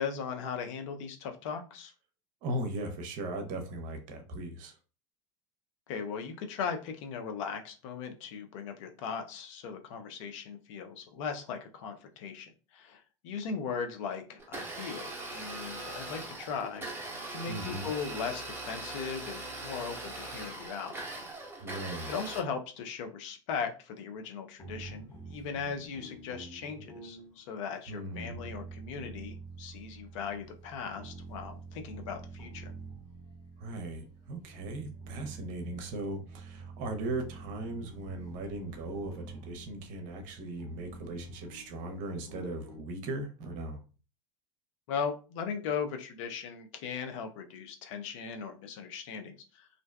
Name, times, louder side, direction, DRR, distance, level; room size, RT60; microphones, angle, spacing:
voice 1, 0.0-1.9 5.9-16.9 17.3-20.9 22.1-32.7 44.9-49.7, left 6 dB, 65° left, 0.6 m, -38 dB
voice 2, 2.4-4.8 17.5-17.9 21.6-22.1 27.9-28.3 33.6-43.8, right 1 dB, 50° right, 0.7 m, -38 dB
Domestic sounds home sounds, 14.4-22.4, right 2 dB, 15° right, 0.9 m, -41 dB
sound 1, 24.6-42.8, right 4 dB, 20° left, 1.3 m, -47 dB
2.5 x 2.1 x 2.2 m
hypercardioid pair, 95°, 17 cm